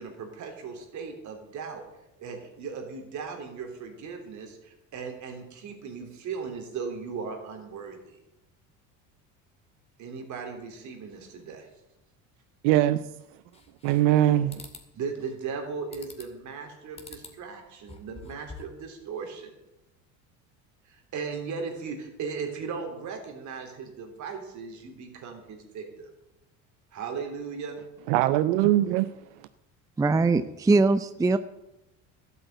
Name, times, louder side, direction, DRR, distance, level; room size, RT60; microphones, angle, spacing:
voice 1, 0.0-1.8 2.2-8.2 10.0-11.7 14.9-19.5 20.9-26.1 26.9-27.8, right 5 dB, 55° right, 3.5 m, -37 dB
voice 2, 12.6-13.0 13.8-14.6 28.1-29.1, right 13 dB, 85° right, 0.6 m, -21 dB
sound 1, 13.5-14.2 14.5-14.9 15.9-16.4 16.9-17.4 17.8-18.8, left 4 dB, 15° left, 2.3 m, -46 dB
voice 3, 30.0-31.4, right 3 dB, 10° right, 0.5 m, -22 dB
12.5 x 8.5 x 8.1 m
cardioid pair, 110°, 35 cm